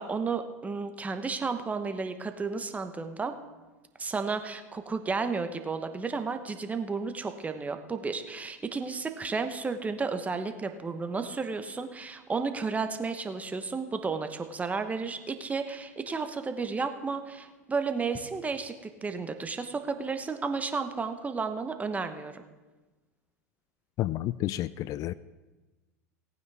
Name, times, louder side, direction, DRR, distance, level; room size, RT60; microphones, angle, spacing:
voice 1, 0.0-3.3 4.0-18.7 19.0-22.4, right 4 dB, 15° right, 8 dB, 1.0 m, -32 dB
voice 2, 24.0-25.1, left 15 dB, 45° left, 17 dB, 0.3 m, -30 dB
18.0 x 9.3 x 3.5 m, 1.2 s
hypercardioid pair, 90°, 9 cm